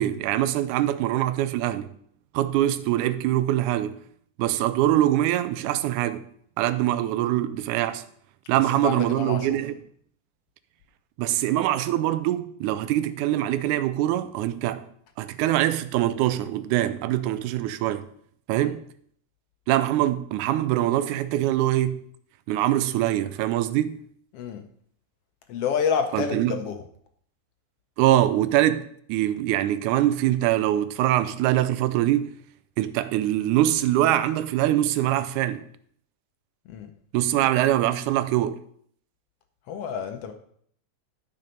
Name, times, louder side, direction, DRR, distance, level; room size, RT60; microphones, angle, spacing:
voice 1, 0.0-1.9 2.3-4.0 4.4-6.2 6.6-8.0 8.5-9.7 11.2-14.9 15.2-18.1 18.5-18.8 19.7-22.0 22.5-24.0 26.1-26.5 28.0-28.8 29.1-32.4 32.8-35.6 37.1-38.6, right 13 dB, 85° right, 2.1 m, -23 dB
voice 2, 8.5-9.6 18.6-18.7 24.3-24.6 25.5-26.8 36.7-36.9 39.7-40.3, left 7 dB, 75° left, 1.4 m, -29 dB
12.0 x 5.4 x 5.2 m
omnidirectional pair, 3.5 m